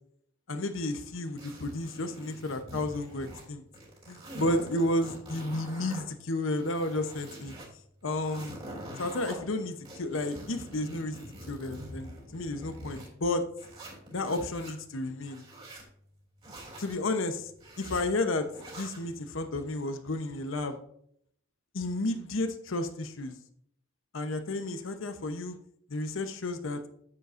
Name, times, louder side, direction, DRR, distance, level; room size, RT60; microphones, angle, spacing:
voice 1, 0.5-3.6 4.1-7.5 8.0-8.6 9.0-13.4 14.1-15.4 16.8-17.5 17.8-18.5 18.8-20.8 21.7-23.3 24.1-25.6 25.9-26.8, left 2 dB, 85° left, 9 dB, 0.9 m, -32 dB
sound 1, 1.4-3.5 3.7-6.0 6.4-7.7 8.1-9.3 9.8-13.1 13.6-14.7 15.2-15.9 16.4-17.0 17.6-18.0 18.5-19.0, right 1 dB, 30° right, 3.0 m, -45 dB
9.2 x 8.2 x 2.6 m, 0.68 s
head